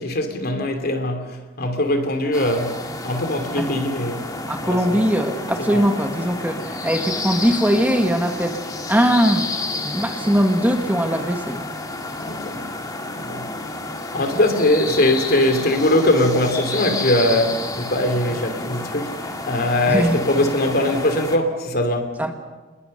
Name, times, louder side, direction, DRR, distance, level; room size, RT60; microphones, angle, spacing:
voice 1, 0.0-4.3 4.6-5.0 5.6-5.9 12.2-12.6 13.1-13.5 14.1-19.2 19.5-22.2, left 1 dB, 50° left, 2.9 m, -21 dB
sound 1, 2.3-21.4, left 2 dB, 20° left, 2.1 m, -30 dB
voice 2, 4.5-8.6 8.9-9.5 9.8-11.7 19.9-20.2 22.2-22.3, equal, 10° right, 1.6 m, -20 dB
28.5 x 21.5 x 6.6 m
head